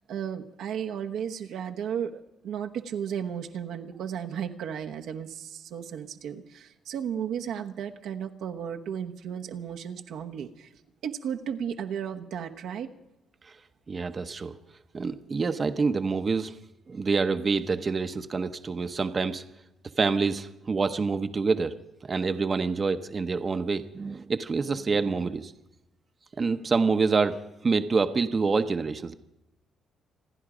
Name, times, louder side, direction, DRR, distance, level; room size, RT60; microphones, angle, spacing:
voice 1, 0.1-10.7 11.0-12.9, right 8 dB, 80° right, 3 dB, 1.1 m, -34 dB
voice 2, 13.9-14.6 14.9-16.5 16.9-19.4 20.0-21.7 22.0-25.5 26.4-29.1, right 4 dB, 35° right, 8 dB, 0.8 m, -27 dB
27.5 x 10.0 x 5.0 m, 0.91 s
cardioid pair, 90°, 0 cm